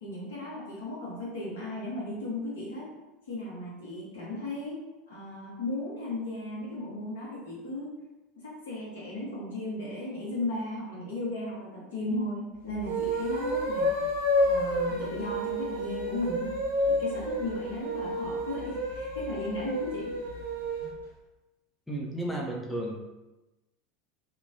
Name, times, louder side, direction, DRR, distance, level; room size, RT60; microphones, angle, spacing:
voice 1, 0.0-2.9 3.3-4.8 5.1-7.9 8.4-14.0 14.4-16.5 16.9-20.2, left 1 dB, 75° left, -6 dB, 1.1 m, -35 dB
sound 1, 12.8-20.9, left 1 dB, 80° right, 0.8 m, -30 dB
voice 2, 21.9-23.0, right 1 dB, 5° left, -1 dB, 0.5 m, -33 dB
2.9 x 2.2 x 2.7 m, 1.1 s
figure-of-eight pair, 80°, 0 cm